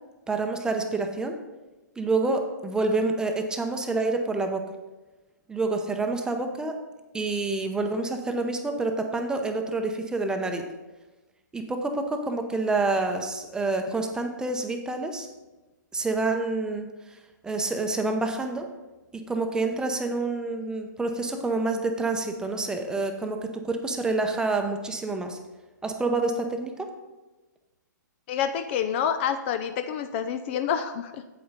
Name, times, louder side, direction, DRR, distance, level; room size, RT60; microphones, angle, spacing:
voice 1, 0.3-1.4 2.0-4.7 5.5-6.8 7.1-10.6 11.5-15.3 15.9-17.2 17.4-18.7 19.1-25.4 25.8-26.9, right 3 dB, 5° right, 4 dB, 0.7 m, -28 dB
voice 2, 28.3-31.2, left 8 dB, 35° left, 10 dB, 0.5 m, -28 dB
8.6 x 7.7 x 4.1 m, 1.1 s
hypercardioid pair, 130°, 10 cm